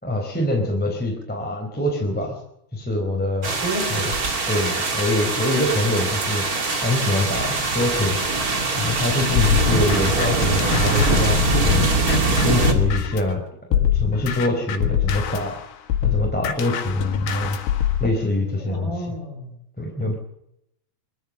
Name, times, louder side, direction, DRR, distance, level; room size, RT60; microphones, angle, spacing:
voice 1, 0.0-2.4 2.7-3.5 3.9-4.0 4.5-6.4 6.8-8.2 8.8-11.8 12.3-13.4 13.7-15.6 16.0-17.6 18.0-18.9 19.8-20.1, left 1 dB, ahead, -1 dB, 4.0 m, -24 dB
sound 1, 3.4-12.7, right 3 dB, 30° right, 2.2 m, -22 dB
voice 2, 3.5-4.2 18.6-19.5, right 1 dB, 30° left, 1 dB, 7.4 m, -31 dB
sound 2, 9.4-13.3 13.7-18.1, left 10 dB, 80° left, 3.9 m, -24 dB
23.5 x 14.5 x 7.6 m, 0.77 s
omnidirectional pair, 4.6 m